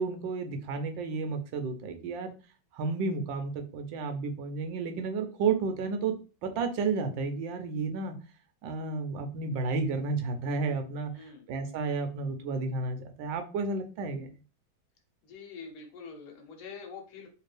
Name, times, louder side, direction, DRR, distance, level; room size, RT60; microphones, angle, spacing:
voice 1, 0.0-2.3 2.7-6.2 6.4-8.2 8.6-14.3, right 4 dB, 70° right, 7 dB, 1.3 m, -32 dB
voice 2, 11.1-11.5 15.2-17.3, left 5 dB, 85° left, 2 dB, 1.8 m, -45 dB
3.3 x 3.2 x 3.2 m, 0.34 s
omnidirectional pair, 2.3 m